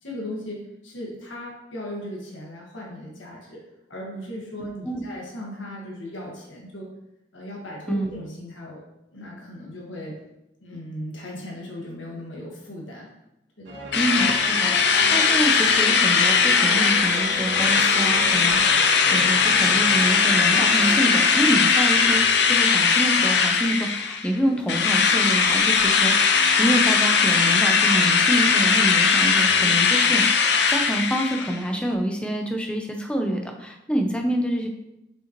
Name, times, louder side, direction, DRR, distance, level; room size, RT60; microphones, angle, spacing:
voice 1, 0.0-3.6 3.9-6.9 7.3-8.8 9.1-10.1 10.6-13.1 13.6-13.8, left 1 dB, 85° left, -3 dB, 1.7 m, -37 dB
sound 1, 13.6-22.2, right 2 dB, 80° right, 1.4 m, -35 dB
Drill, 13.9-24.3 24.7-31.6, left 5 dB, 60° left, 0.6 m, -19 dB
voice 2, 13.9-34.7, equal, 5° left, 2 dB, 0.6 m, -27 dB
6.5 x 5.4 x 3.0 m, 0.91 s
head